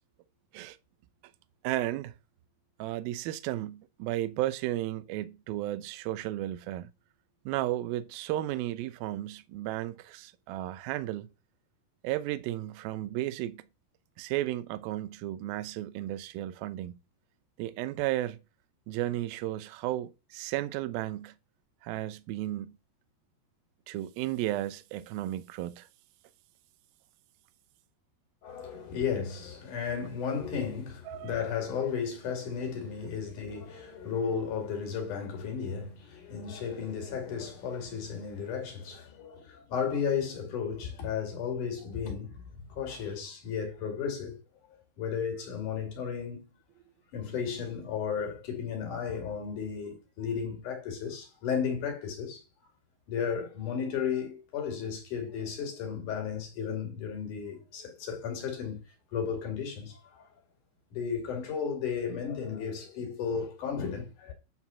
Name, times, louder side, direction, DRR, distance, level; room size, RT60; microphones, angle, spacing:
voice 1, 1.6-2.2 2.8-6.9 7.5-11.3 12.0-13.6 14.2-16.9 17.6-18.4 18.9-21.3 21.8-22.8 23.9-25.9 31.1-31.5 33.2-33.3, right 14 dB, 80° right, 2.1 m, -34 dB
voice 2, 28.4-44.4 44.7-46.4 47.1-52.4 53.1-58.8 59.1-60.2 60.9-64.3, left 7 dB, 50° left, 3.3 m, -34 dB
9.7 x 4.6 x 5.6 m
omnidirectional pair, 5.0 m